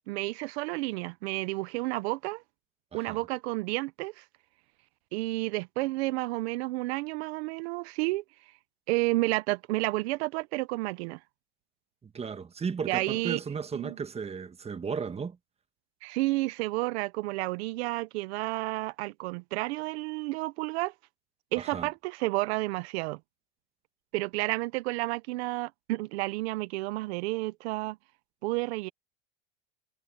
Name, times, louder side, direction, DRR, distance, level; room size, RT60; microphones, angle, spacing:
voice 1, 0.1-2.4 2.9-4.2 5.1-8.2 8.9-11.2 12.9-13.4 13.7-14.0 16.0-20.9 21.5-23.2 24.1-28.0 28.4-28.9, right 21 dB, 85° right, 0.8 m, -31 dB
voice 2, 12.0-15.4 21.6-21.9, right 5 dB, 20° right, 1.4 m, -35 dB
supercardioid pair, 120°, 31 cm